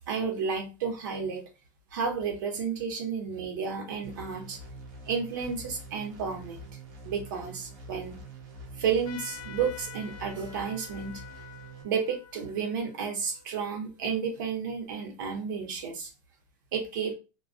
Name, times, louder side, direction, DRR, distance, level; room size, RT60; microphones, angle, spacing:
voice 1, 0.1-1.4 1.9-4.6 5.1-6.6 7.0-8.2 8.8-11.2 11.8-16.1 16.7-17.1, right 6 dB, 80° right, 3 dB, 0.9 m, -32 dB
sound 1, 4.0-11.8, right 2 dB, 40° right, 0.6 m, -45 dB
Trumpet, 9.0-14.1, left 9 dB, 35° left, 0.4 m, -48 dB
2.2 x 2.2 x 2.5 m, 0.30 s
supercardioid pair, 175°, 10 cm